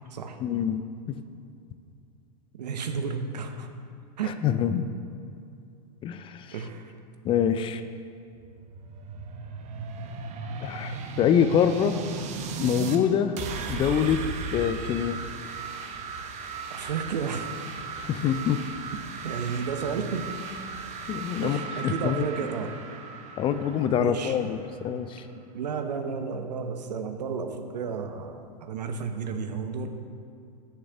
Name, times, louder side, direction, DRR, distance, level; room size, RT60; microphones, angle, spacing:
voice 1, 0.4-0.8 4.2-4.9 6.0-6.5 7.2-7.8 10.6-12.0 12.6-13.4 13.7-14.2 14.5-15.2 18.0-18.6 21.1-22.3 23.4-25.2, left 8 dB, 25° left, 10 dB, 0.4 m, -25 dB
voice 2, 2.5-3.7 4.2-4.4 6.5-6.9 16.7-17.5 19.2-20.3 21.4-22.8 24.0-24.5 25.5-29.9, right 6 dB, 75° right, 7 dB, 0.9 m, -32 dB
sound 1, 8.3-13.0 13.4-24.9, right 5 dB, 35° right, 0.8 m, -37 dB
6.6 x 6.4 x 6.9 m, 2.5 s
hypercardioid pair, 105°, 21 cm